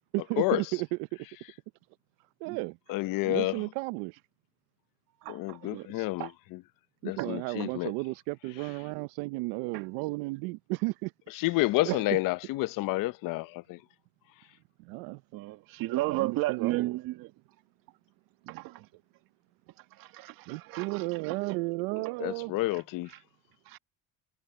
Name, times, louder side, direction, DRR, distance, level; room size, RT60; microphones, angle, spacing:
voice 1, 0.1-1.1 2.4-2.8 3.2-4.2 7.0-11.1 11.8-12.0 14.8-15.2 16.0-17.0 18.4-18.8 20.5-22.5, right 24 dB, 90° right, 0.7 m, -33 dB
voice 2, 2.9-3.5 5.3-6.3 7.0-7.9 11.4-13.8 22.2-23.1, left 19 dB, 65° left, 0.8 m, -29 dB
voice 3, 5.2-6.3 7.2-7.4 9.7-9.8 15.3-17.3 18.5-18.9 20.0-21.4 23.7-23.8, right 17 dB, 70° right, 1.9 m, -34 dB
cardioid pair, 115°, 35 cm